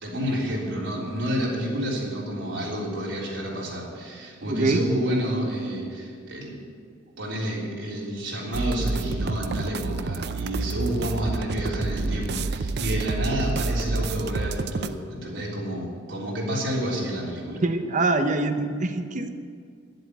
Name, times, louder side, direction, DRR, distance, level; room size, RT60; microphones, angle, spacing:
voice 1, 0.0-6.6 7.2-17.6, equal, 85° right, -5 dB, 3.6 m, -29 dB
voice 2, 4.5-4.8 17.6-19.3, right 2 dB, 45° right, 7 dB, 0.9 m, -24 dB
sound 1, 8.5-14.9, right 3 dB, 60° right, 0.5 m, -28 dB
10.5 x 7.8 x 9.6 m, 2.1 s
head